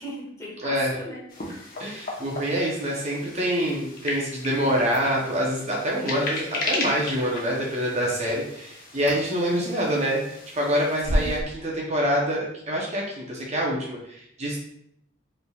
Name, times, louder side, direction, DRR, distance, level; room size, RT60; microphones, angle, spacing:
voice 1, 0.0-1.9 11.0-11.4, equal, 15° left, -4 dB, 1.2 m, -39 dB
sound 1, 1.3-11.4, left 1 dB, 50° left, 1.0 m, -34 dB
voice 2, 1.8-10.2 10.5-14.6, equal, 35° right, -3 dB, 0.8 m, -26 dB
5.1 x 3.3 x 2.3 m, 0.73 s
head